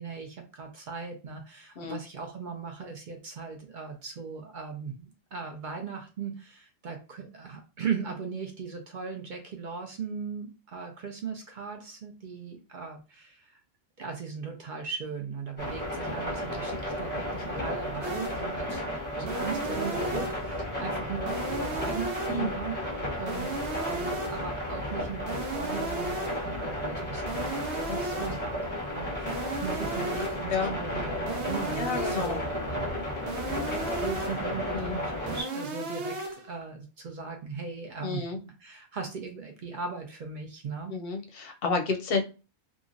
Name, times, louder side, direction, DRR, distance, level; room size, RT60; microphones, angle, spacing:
voice 1, 0.0-13.6 14.0-33.4 33.7-41.0, right 5 dB, 55° right, 3 dB, 0.6 m, -38 dB
sound 1, 15.6-35.4, left 1 dB, 10° left, 0.8 m, -33 dB
sound 2, 18.0-18.5 19.3-20.5 21.3-22.5 23.3-24.5 25.3-26.5 27.3-28.5 29.3-30.5 31.3-32.5 33.3-34.5 35.3-36.5, right 2 dB, 85° right, 1.0 m, -36 dB
voice 2, 27.9-28.2 30.5-30.7 31.7-32.4 34.7-35.0 38.0-38.4 40.9-42.2, left 4 dB, 65° left, 4 dB, 0.7 m, -30 dB
2.9 x 2.4 x 2.5 m, 0.31 s
omnidirectional pair, 1.1 m